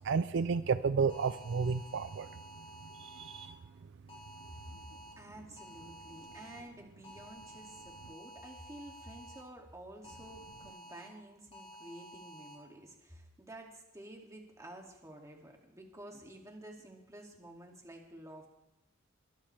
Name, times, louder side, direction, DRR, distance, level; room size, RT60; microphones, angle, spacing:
voice 1, 0.0-2.3 3.0-3.5, right 5 dB, 60° right, 13 dB, 0.4 m, -31 dB
sound 1, 1.1-3.5 4.1-5.1 5.6-6.6 7.0-9.4 10.0-11.1 11.5-12.5, right 1 dB, 25° left, 2.9 m, -52 dB
voice 2, 5.2-18.5, right 1 dB, 15° right, 1 dB, 2.3 m, -51 dB
22.5 x 13.0 x 3.3 m, 0.91 s
head